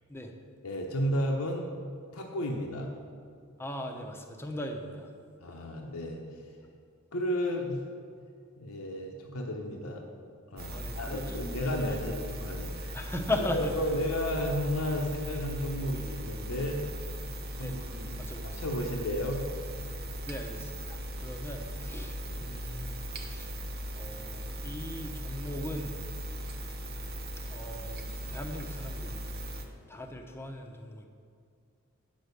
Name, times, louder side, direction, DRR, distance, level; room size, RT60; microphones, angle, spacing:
voice 1, 0.6-1.7 2.1-2.9 5.4-6.2 7.1-7.8 8.6-10.0 10.5-13.0 13.5-16.8 17.6-18.2 18.6-19.5 22.2-22.5, equal, 75° left, 0 dB, 0.9 m, -33 dB
voice 2, 3.6-5.1 10.7-12.1 12.9-13.7 17.6-17.8 18.2-18.6 20.2-23.5 23.9-26.0 27.4-29.3 29.9-31.1, left 1 dB, 10° left, 3 dB, 0.8 m, -38 dB
sound 1, 10.6-29.7, equal, 45° right, 0.9 m, -38 dB
9.3 x 6.3 x 6.7 m, 2.3 s
head